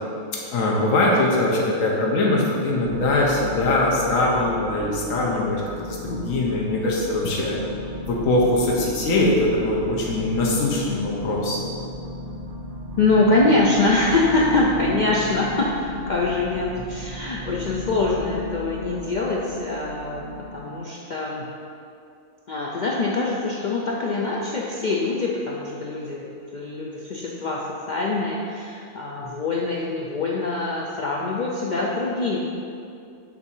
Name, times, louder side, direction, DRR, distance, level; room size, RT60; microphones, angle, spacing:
voice 1, 0.5-5.6 5.9-7.6 8.0-11.6, left 2 dB, 75° left, -3 dB, 1.2 m, -22 dB
sound 1, 2.8-20.5, left 1 dB, 80° right, 2.0 m, -35 dB
voice 2, 13.0-20.3 20.5-21.5 22.5-32.4, left 3 dB, 60° left, -4 dB, 0.5 m, -24 dB
7.2 x 2.7 x 5.4 m, 2.5 s
omnidirectional pair, 1.4 m